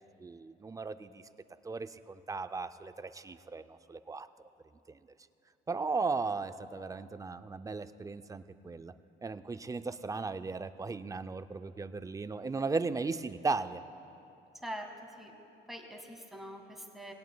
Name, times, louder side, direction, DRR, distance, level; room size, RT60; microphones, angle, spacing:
voice 1, 0.2-1.2 1.6-4.3 4.9-5.0 5.7-8.9 9.2-13.8, right 4 dB, 15° right, 11 dB, 0.4 m, -36 dB
voice 2, 15.7-17.1, right 1 dB, ahead, 1 dB, 1.6 m, -43 dB
20.0 x 17.5 x 2.2 m, 2.7 s
cardioid pair, 115°, 20 cm